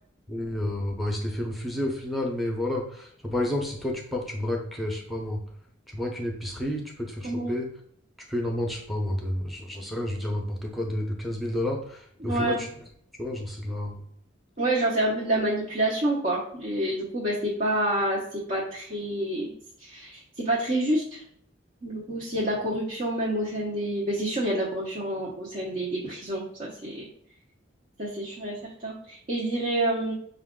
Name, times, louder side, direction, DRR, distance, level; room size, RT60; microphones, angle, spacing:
voice 1, 0.3-5.4 5.9-7.7 8.3-12.7 13.2-14.0, left 1 dB, ahead, 0 dB, 0.7 m, -30 dB
voice 2, 7.2-7.6 12.2-12.6 14.6-19.5 19.8-21.2 21.8-27.0 28.0-28.5 28.8-30.1, right 1 dB, 40° right, -5 dB, 0.8 m, -28 dB
5.8 x 2.3 x 3.7 m, 0.66 s
head